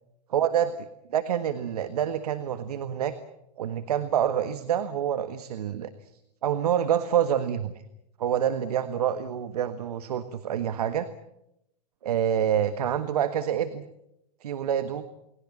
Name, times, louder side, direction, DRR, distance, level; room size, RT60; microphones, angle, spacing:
voice 1, 0.3-0.7 1.1-3.1 3.6-5.9 6.4-7.7 8.2-11.1 12.0-13.8 14.4-15.0, right 9 dB, 70° right, 10 dB, 1.6 m, -27 dB
29.5 x 20.5 x 7.4 m, 0.84 s
hypercardioid pair, 105°, 20 cm